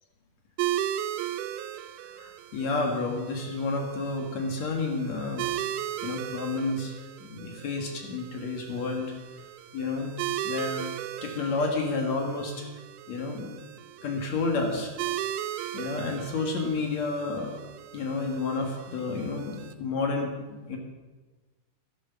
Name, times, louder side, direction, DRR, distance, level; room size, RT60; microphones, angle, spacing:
sound 1, 0.6-19.7, right 12 dB, 85° right, 2.6 m, -37 dB
voice 1, 2.0-5.6 6.0-6.9 7.2-9.1 9.7-10.8 11.2-12.7 13.1-13.5 14.0-14.9 15.6-17.6 17.9-20.8, left 3 dB, 55° left, 2 dB, 2.6 m, -30 dB
12.0 x 11.0 x 7.1 m, 1.2 s
omnidirectional pair, 4.3 m